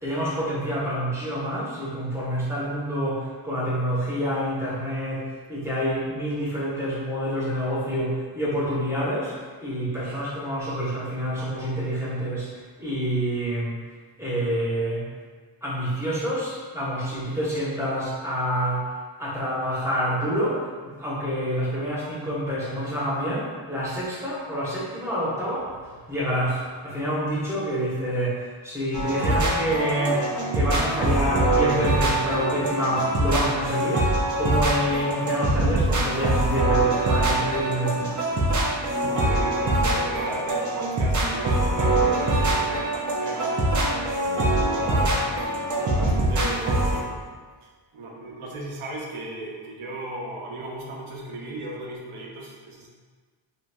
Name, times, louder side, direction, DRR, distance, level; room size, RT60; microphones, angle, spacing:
voice 1, 0.0-12.5 12.8-13.7 14.2-15.1 15.6-18.9 19.2-34.1 34.4-38.2, equal, 5° right, -9 dB, 0.9 m, -27 dB
sound 1, 28.9-47.0, right 1 dB, 40° right, 0.5 m, -23 dB
voice 2, 38.9-43.7 44.5-45.3 45.8-47.2 47.9-52.9, right 1 dB, 85° right, -2 dB, 0.7 m, -36 dB
2.8 x 2.6 x 2.2 m, 1.5 s
wide cardioid pair, 95°, 48 cm